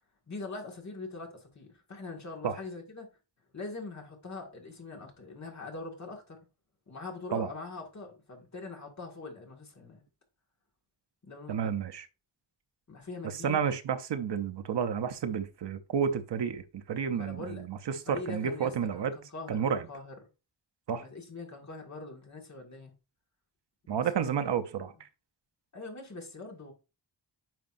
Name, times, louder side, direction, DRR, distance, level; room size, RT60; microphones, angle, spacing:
voice 1, 0.3-3.1 3.5-6.4 6.9-10.0 11.2-11.8 12.9-13.6 17.1-17.7 18.1-20.1 20.9-22.9 23.9-24.8 25.7-26.7, left 3 dB, 40° left, 1.8 m, -43 dB
voice 2, 11.5-12.1 13.2-19.1 19.5-19.9 20.9-21.1 23.9-25.1, right 7 dB, 70° right, 0.7 m, -31 dB
9.3 x 5.1 x 2.5 m
wide cardioid pair, 175°, 44 cm